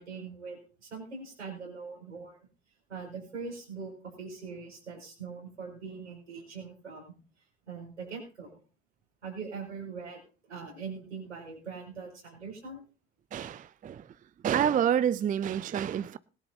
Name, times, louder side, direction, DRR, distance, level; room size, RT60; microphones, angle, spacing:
voice 1, 0.0-2.4 2.9-7.0 7.7-8.6 9.2-12.8, right 5 dB, 85° right, 5.7 m, -42 dB
voice 2, 13.3-14.2 14.4-16.2, right 9 dB, 25° right, 0.5 m, -28 dB
20.5 x 10.5 x 2.8 m
figure-of-eight pair, 55°, 34 cm